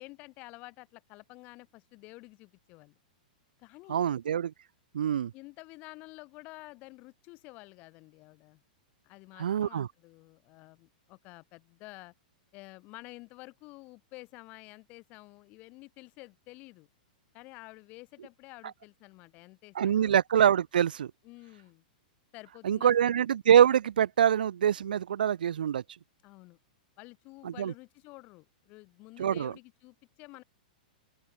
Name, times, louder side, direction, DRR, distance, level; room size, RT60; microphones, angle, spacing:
voice 1, 0.0-3.0 3.6-4.1 5.3-8.6 9.0-12.1 12.5-16.9 17.3-20.1 21.2-21.8 22.3-23.1 26.2-26.6 27.0-30.4, left 23 dB, 30° left, 2.2 m, -50 dB
voice 2, 3.9-4.5 4.9-5.3 9.4-9.9 19.7-21.1 22.6-25.8 27.4-27.7 29.2-29.5, right 9 dB, 90° right, 1.4 m, -25 dB
open air
supercardioid pair, 160°, 5 cm